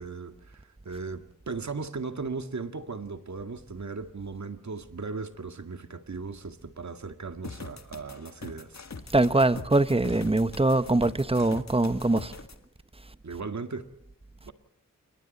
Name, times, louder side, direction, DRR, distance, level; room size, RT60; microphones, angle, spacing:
voice 1, 0.0-8.8 13.2-13.9 14.4-14.5, right 4 dB, 60° right, 2.0 m, -37 dB
sound 1, 7.4-12.5, left 4 dB, 55° left, 1.9 m, -42 dB
voice 2, 9.1-12.3, right 2 dB, 15° right, 1.2 m, -23 dB
27.5 x 23.5 x 4.2 m
wide cardioid pair, 60°, 32 cm